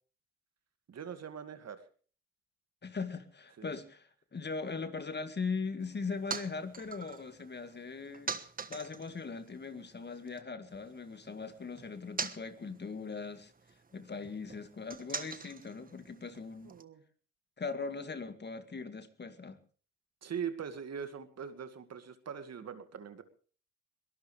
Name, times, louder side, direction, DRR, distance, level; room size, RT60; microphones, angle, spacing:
voice 1, 0.9-1.8 3.6-3.7 16.6-17.0 20.2-23.2, right 7 dB, 45° right, 9 dB, 2.1 m, -41 dB
voice 2, 2.8-8.4 8.7-13.5 13.9-16.7 17.6-19.6, left 4 dB, 30° left, 10 dB, 1.9 m, -40 dB
sound 1, 5.8-10.4 10.7-16.8, right 5 dB, 25° right, 1.3 m, -45 dB
22.5 x 18.0 x 3.3 m, 0.41 s
supercardioid pair, 75°, 37 cm